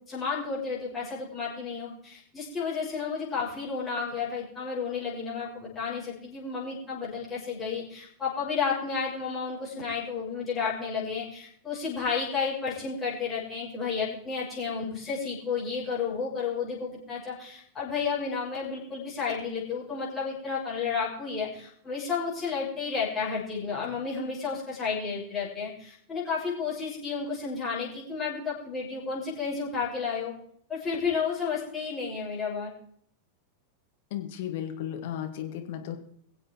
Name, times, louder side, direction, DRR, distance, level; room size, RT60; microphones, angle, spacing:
voice 1, 0.1-30.3 30.7-32.7, left 5 dB, 20° left, -6 dB, 6.4 m, -32 dB
voice 2, 34.1-36.0, left 10 dB, 50° left, 4 dB, 2.1 m, -34 dB
22.5 x 7.7 x 4.7 m, 0.63 s
figure-of-eight pair, 90°, 0 cm